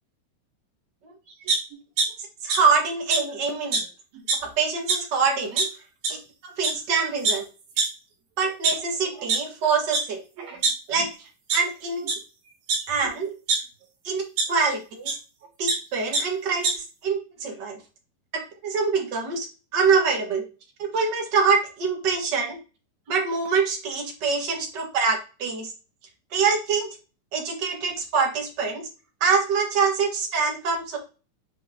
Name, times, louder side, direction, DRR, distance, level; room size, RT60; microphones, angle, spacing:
sound 1, 1.5-2.1 2.5-2.6 3.1-3.2 3.7-3.8 4.1-4.5 4.9-5.0 5.6-5.7 6.0-6.2 6.6-6.7 7.2-7.3 7.8-7.9 8.4-9.4 9.9-10.0 10.4-11.1 11.5-11.6 12.0-12.2 12.7-13.6 14.4-14.5 15.1-15.2 15.4-15.8 16.1-16.2 16.5-16.7, right 4 dB, 75° right, 3.5 m, -23 dB
voice 1, 2.4-3.8 4.4-5.7 6.4-7.4 8.4-10.2 10.9-12.1 12.9-13.3 14.0-14.2 14.5-15.1 15.6-17.8 18.3-19.5 19.7-20.4 20.8-22.6 23.1-25.7 26.3-26.9 27.3-28.9 29.2-31.0, right 5 dB, 55° right, 0 dB, 1.2 m, -25 dB
7.5 x 5.3 x 2.8 m, 0.33 s
omnidirectional pair, 4.2 m